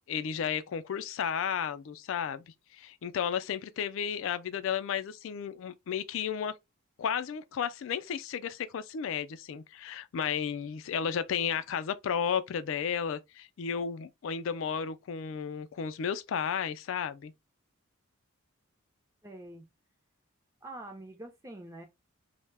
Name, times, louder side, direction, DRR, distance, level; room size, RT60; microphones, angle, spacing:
voice 1, 0.1-2.4 2.7-6.6 7.0-17.3, left 7 dB, 60° left, 0.3 m, -33 dB
voice 2, 19.2-19.6 20.6-21.8, right 1 dB, 15° right, 0.5 m, -45 dB
2.1 x 2.1 x 3.2 m
head